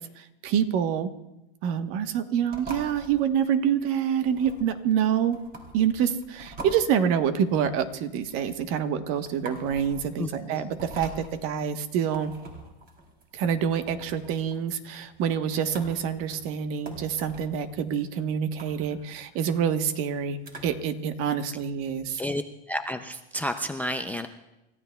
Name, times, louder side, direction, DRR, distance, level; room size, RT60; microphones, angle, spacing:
voice 1, 0.4-1.1 1.6-5.4 5.7-12.3 13.3-22.2, right 8 dB, 50° right, 9 dB, 1.1 m, -26 dB
sound 1, 2.5-20.9, right 2 dB, 30° right, 3.4 m, -45 dB
voice 2, 10.2-10.7 22.2-22.4 22.7-24.3, equal, 5° left, 8 dB, 0.4 m, -31 dB
29.5 x 14.5 x 2.3 m, 0.93 s
supercardioid pair, 130°, 29 cm